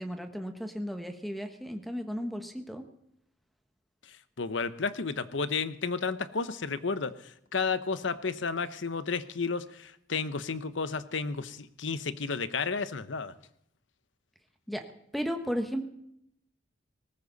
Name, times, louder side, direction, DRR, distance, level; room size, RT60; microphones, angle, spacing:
voice 1, 0.0-2.8 14.7-14.8 15.1-15.8, equal, ahead, 6 dB, 1.3 m, -34 dB
voice 2, 4.0-13.3, left 4 dB, 75° left, 13 dB, 0.9 m, -32 dB
18.5 x 14.5 x 4.1 m, 0.76 s
head